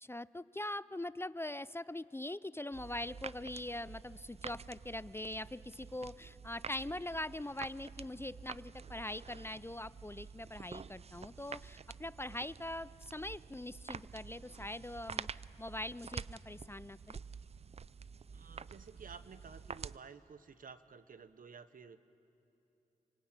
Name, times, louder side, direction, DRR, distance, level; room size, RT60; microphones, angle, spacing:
voice 1, 0.0-15.3 15.6-17.2, left 1 dB, 15° left, 18 dB, 0.5 m, -42 dB
sound 1, 2.7-20.0, right 6 dB, 45° right, 0.4 m, -49 dB
voice 2, 18.3-22.0, right 5 dB, 70° right, 12 dB, 1.0 m, -53 dB
27.0 x 18.5 x 8.9 m, 2.9 s
cardioid pair, 50°, 15 cm